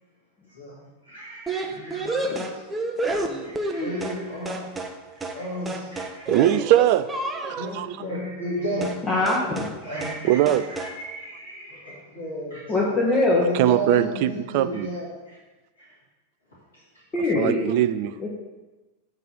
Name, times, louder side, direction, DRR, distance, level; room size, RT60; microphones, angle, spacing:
voice 1, 0.5-5.0 5.3-6.3 7.5-9.1 9.8-13.0 13.4-15.4 15.8-15.9 16.7-16.8, equal, 65° left, -9 dB, 2.6 m, -34 dB
sound 1, 1.5-4.2 4.5-5.0 5.2-5.4 5.7-7.7 8.8-9.0 9.3-9.8 10.0-10.2 10.5-11.0, right 2 dB, 10° right, 0.8 m, -30 dB
voice 2, 6.3-7.1 7.4-8.0 10.2-10.7 13.4-14.9 17.3-18.1, right 13 dB, 45° right, 11 dB, 0.4 m, -21 dB
voice 3, 9.1-9.7 12.7-13.5 17.1-17.7 18.2-18.3, left 2 dB, 25° left, -4 dB, 1.3 m, -22 dB
8.3 x 4.0 x 6.5 m, 1.2 s
figure-of-eight pair, 90°, 0 cm